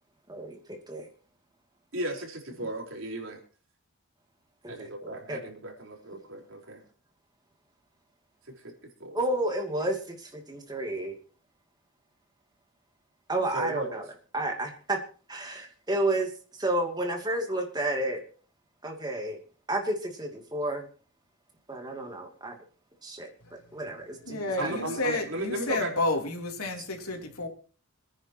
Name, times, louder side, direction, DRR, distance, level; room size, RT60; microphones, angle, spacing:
voice 1, 0.3-1.1 4.6-5.4 9.1-11.1 13.3-14.0 14.3-15.0 15.3-18.2 18.8-19.4 19.7-20.9 21.7-22.6 23.0-23.3 23.7-24.8, right 1 dB, 20° right, 3 dB, 2.7 m, -31 dB
voice 2, 1.9-3.4 4.7-6.8 8.4-8.7 9.0-9.2 13.5-14.0 24.6-25.9, right 1 dB, 60° right, 1 dB, 4.3 m, -35 dB
voice 3, 24.2-27.5, left 2 dB, 90° left, 2 dB, 3.4 m, -30 dB
26.5 x 10.0 x 3.0 m, 0.39 s
head